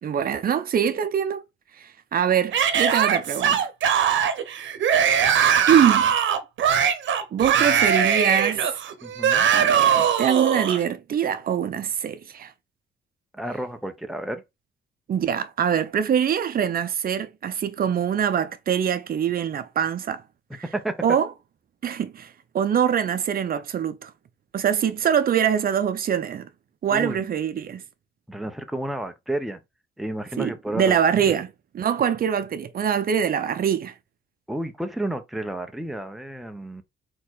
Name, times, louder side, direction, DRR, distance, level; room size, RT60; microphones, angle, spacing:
voice 1, 0.0-1.4 1.8-3.7 5.7-6.1 7.3-8.7 9.5-12.5 15.1-20.2 20.5-20.7 21.0-21.3 21.8-24.1 24.5-26.5 26.8-27.8 30.4-31.5 31.7-33.9, right 8 dB, 50° right, 0.7 m, -23 dB
Yell / Screaming, 2.5-10.8, right 8 dB, 70° right, 1.0 m, -21 dB
voice 2, 9.0-9.5 13.3-14.4 20.7-21.0 26.9-27.2 28.3-29.6 30.0-31.0 31.3-31.4 34.5-36.8, right 1 dB, ahead, 0.9 m, -31 dB
4.2 x 3.1 x 4.0 m
cardioid pair, 90°, 20 cm